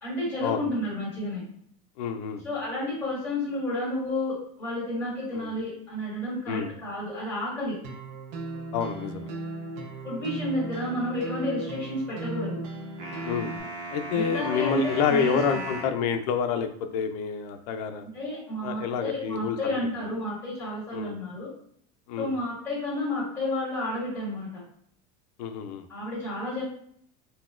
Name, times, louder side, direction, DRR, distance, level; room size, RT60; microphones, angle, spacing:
voice 1, 0.0-1.4 2.4-7.8 10.0-12.6 14.1-15.6 18.0-21.5 22.2-24.6 25.9-26.6, left 1 dB, 15° left, -10 dB, 1.5 m, -31 dB
voice 2, 2.0-2.4 5.3-5.5 6.5-6.7 8.7-9.3 13.2-13.5 13.9-18.1 18.6-19.8 20.9-21.1 22.1-22.3 25.4-25.9, left 7 dB, 80° left, 7 dB, 0.5 m, -28 dB
sound 1, 7.8-13.6, right 2 dB, 45° right, 0.4 m, -37 dB
sound 2, 13.0-16.0, right 2 dB, 65° right, 1.0 m, -37 dB
4.0 x 2.2 x 2.4 m, 0.64 s
cardioid pair, 180°, 20 cm